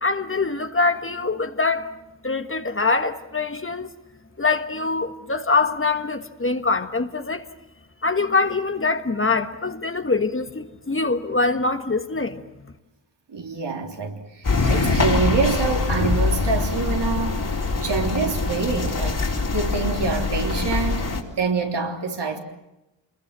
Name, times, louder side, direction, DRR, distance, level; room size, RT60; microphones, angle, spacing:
voice 1, 0.0-1.9 2.2-3.9 4.4-7.5 8.0-12.4, left 3 dB, 30° left, 1.5 m, -24 dB
voice 2, 13.3-17.4 17.8-19.2 19.5-22.4, right 4 dB, 70° right, 3.5 m, -26 dB
sound 1, 14.4-21.2, left 3 dB, 45° left, 3.9 m, -23 dB
27.5 x 21.5 x 7.6 m
wide cardioid pair, 90°, 43 cm